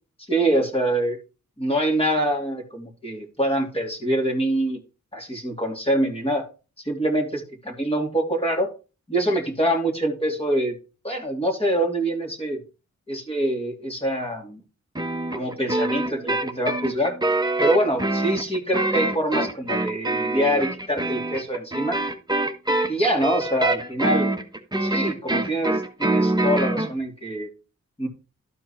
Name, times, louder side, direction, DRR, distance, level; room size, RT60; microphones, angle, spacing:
voice 1, 0.3-1.2 1.6-4.8 5.1-6.4 6.8-8.7 9.1-10.7 11.0-12.6 13.1-14.6 15.3-17.2 17.6-22.0 22.9-24.3 24.8-27.5 28.0-28.1, right 1 dB, 20° left, 0 dB, 2.9 m, -25 dB
sound 1, 14.9-26.9, right 2 dB, 15° right, 1.3 m, -25 dB
12.5 x 4.6 x 4.3 m, 0.32 s
cardioid pair, 60°, 29 cm